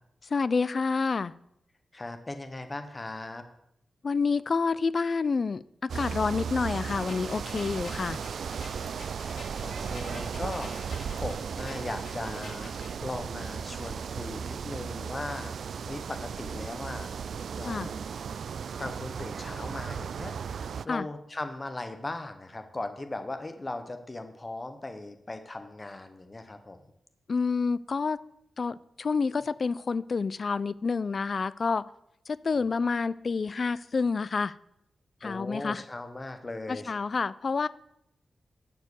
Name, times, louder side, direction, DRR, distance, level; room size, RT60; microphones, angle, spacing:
voice 1, 0.3-1.3 4.0-8.2 17.6-17.9 20.9-21.1 27.3-28.2 28.6-31.9 32.3-34.5 35.2-35.8 36.7-37.7, left 4 dB, 40° left, 18 dB, 0.3 m, -28 dB
voice 2, 1.9-3.4 7.9-8.4 9.2-15.5 15.9-17.1 17.6-18.0 18.8-26.8 35.2-36.9, left 2 dB, 20° left, 8 dB, 0.8 m, -38 dB
sound 1, 5.9-20.9, right 6 dB, 70° right, 0.3 m, -36 dB
sound 2, 7.0-13.0, left 3 dB, 80° left, 2.9 m, -48 dB
12.0 x 4.6 x 8.1 m, 0.79 s
wide cardioid pair, 155°, 0 cm